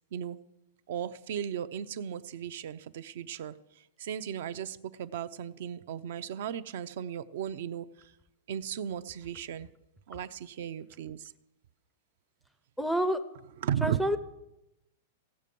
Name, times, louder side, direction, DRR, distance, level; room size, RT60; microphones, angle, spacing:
voice 1, 0.9-8.1 8.5-9.7 10.1-11.3 13.6-14.0, right 9 dB, 55° right, 14 dB, 0.6 m, -36 dB
voice 2, 12.8-13.2 13.8-14.2, equal, ahead, 11 dB, 0.5 m, -28 dB
16.5 x 7.5 x 6.9 m, 0.88 s
supercardioid pair, 175°, 0 cm